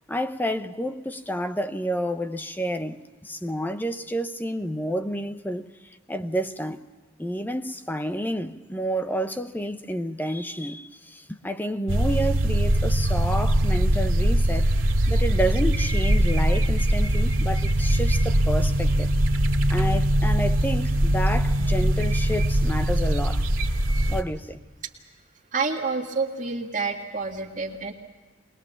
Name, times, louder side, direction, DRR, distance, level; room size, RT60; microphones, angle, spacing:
voice 1, 0.1-5.7 6.1-6.8 7.2-14.7 15.1-19.1 19.7-23.5 24.1-24.6, equal, 10° left, 0.8 m, -29 dB
sound 1, 11.9-24.2, right 1 dB, 90° right, 2.0 m, -22 dB
voice 2, 25.5-27.9, right 4 dB, 40° right, 1.8 m, -28 dB
22.0 x 21.0 x 7.2 m
head